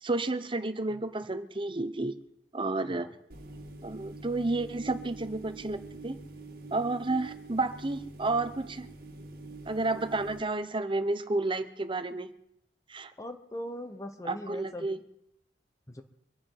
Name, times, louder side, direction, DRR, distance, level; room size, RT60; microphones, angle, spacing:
voice 1, 0.0-2.1 2.5-3.1 3.8-6.2 6.7-8.9 9.7-12.3 12.9-13.1 14.2-15.0, right 2 dB, 30° right, 10 dB, 1.0 m, -31 dB
sound 1, 3.3-10.4, right 2 dB, 60° right, 1.8 m, -45 dB
voice 2, 13.2-14.9 15.9-16.0, left 1 dB, 20° left, 8 dB, 1.0 m, -40 dB
24.5 x 8.6 x 5.6 m, 0.80 s
head